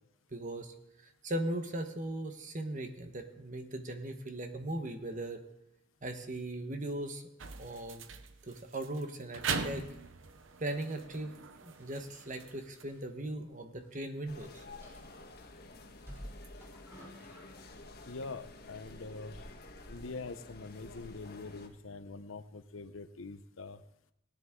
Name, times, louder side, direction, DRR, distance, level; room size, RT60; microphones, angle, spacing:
voice 1, 0.3-0.7 1.2-5.4 6.0-7.2 7.6-8.0 8.5-9.9 10.6-11.3 11.6-14.6, right 1 dB, 40° right, 6 dB, 1.2 m, -38 dB
sound 1, 7.4-12.8, right 5 dB, 70° right, 0.8 m, -41 dB
sound 2, 11.7-14.0 14.2-14.3 14.8-15.5 16.0-17.8 18.2-18.4, equal, 15° right, 4.2 m, -52 dB
sound 3, 14.3-21.7, left 2 dB, 50° left, 1.4 m, -51 dB
voice 2, 18.0-19.3 19.9-23.8, left 3 dB, 85° left, 12 dB, 0.8 m, -44 dB
17.5 x 10.0 x 3.7 m, 0.85 s
head